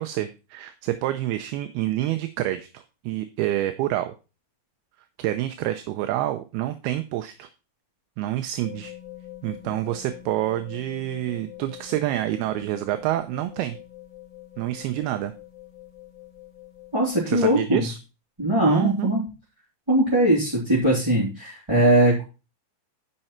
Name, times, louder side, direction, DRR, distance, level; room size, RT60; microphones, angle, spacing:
voice 1, 0.0-4.1 5.2-7.5 8.2-8.9 9.4-13.8 14.6-15.3 17.3-18.0 18.7-19.1, right 14 dB, 80° right, 9 dB, 2.5 m, -27 dB
sound 1, 8.6-17.3, left 14 dB, 40° left, 3.6 m, -44 dB
voice 2, 16.9-17.8 18.4-19.2 19.9-22.2, right 1 dB, 5° right, -7 dB, 2.7 m, -20 dB
12.0 x 5.4 x 4.4 m, 0.30 s
omnidirectional pair, 4.9 m